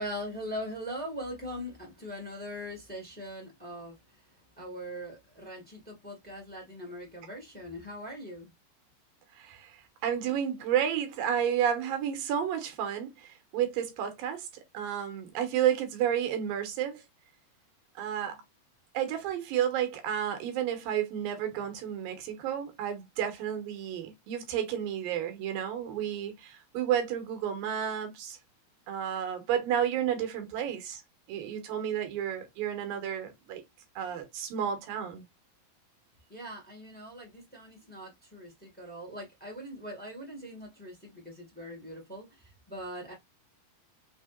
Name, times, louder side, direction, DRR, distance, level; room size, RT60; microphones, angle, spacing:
voice 1, 0.0-4.2 4.6-8.5 36.3-43.1, equal, 15° left, 0.4 m, -41 dB
voice 2, 9.3-9.7 10.0-14.5 14.7-17.0 18.0-18.4 18.9-28.4 28.9-31.0 31.3-33.6 34.0-35.2, right 9 dB, 85° right, 2.7 m, -31 dB
6.1 x 2.8 x 2.5 m
omnidirectional pair, 4.0 m